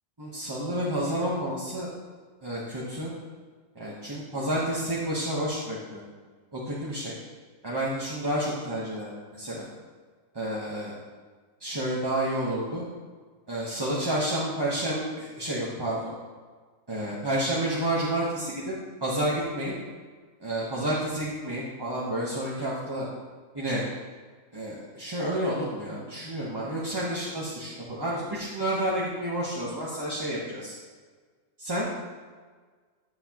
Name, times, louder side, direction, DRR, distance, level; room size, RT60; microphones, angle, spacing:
voice 1, 0.2-1.9 2.4-3.1 3.7-6.0 6.5-7.1 7.6-9.1 9.4-9.7 10.3-10.9 11.6-12.8 13.5-16.1 16.9-18.7 19.0-19.7 20.4-23.1 23.5-23.8 24.5-30.7 31.6-31.9, right 1 dB, 20° right, -7 dB, 1.0 m, -30 dB
9.8 x 7.8 x 3.0 m, 1.5 s
omnidirectional pair, 1.4 m